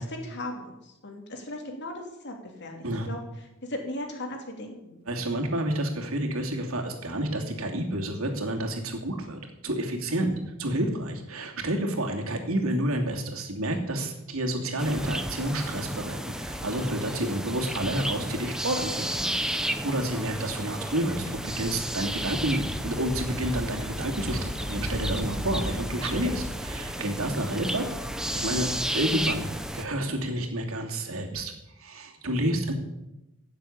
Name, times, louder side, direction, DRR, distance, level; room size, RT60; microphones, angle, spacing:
voice 1, 0.0-5.0, left 1 dB, 55° left, 3 dB, 3.1 m, -38 dB
voice 2, 5.1-27.8 28.3-28.7 28.9-31.5 31.8-32.7, right 1 dB, 85° right, 2 dB, 2.8 m, -29 dB
sound 1, 14.8-29.8, equal, 5° right, 0.9 m, -32 dB
16.0 x 7.5 x 8.7 m, 0.93 s
head